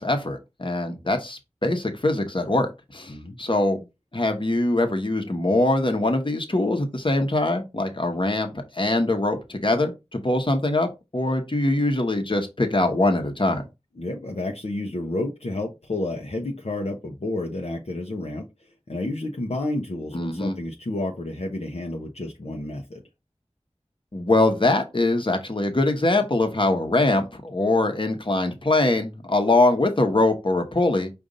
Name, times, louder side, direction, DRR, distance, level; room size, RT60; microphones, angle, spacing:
voice 1, 0.0-3.8 4.1-13.6 20.1-20.6 24.1-31.1, left 2 dB, 45° left, 1.1 m, -23 dB
voice 2, 14.0-23.0, left 2 dB, 70° left, 0.7 m, -30 dB
5.1 x 2.6 x 3.9 m
wide cardioid pair, 40°, 11 cm